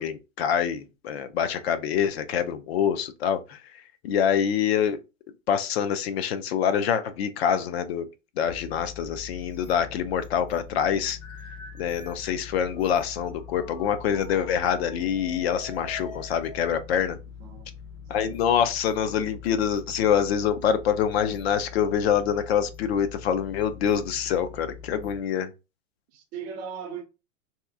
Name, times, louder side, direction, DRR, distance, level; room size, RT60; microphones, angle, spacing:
voice 1, 0.0-5.0 5.5-8.1 8.4-11.2 11.8-17.2 18.1-25.5, left 8 dB, 50° left, 0.5 m, -25 dB
sound 1, 8.5-25.2, left 6 dB, 30° left, 0.8 m, -44 dB
sound 2, 11.2-16.7, left 2 dB, 85° left, 1.4 m, -46 dB
voice 2, 17.4-17.7 18.2-18.4 26.1-27.0, right 7 dB, 20° right, 0.5 m, -38 dB
2.8 x 2.4 x 3.5 m
supercardioid pair, 155°, 40 cm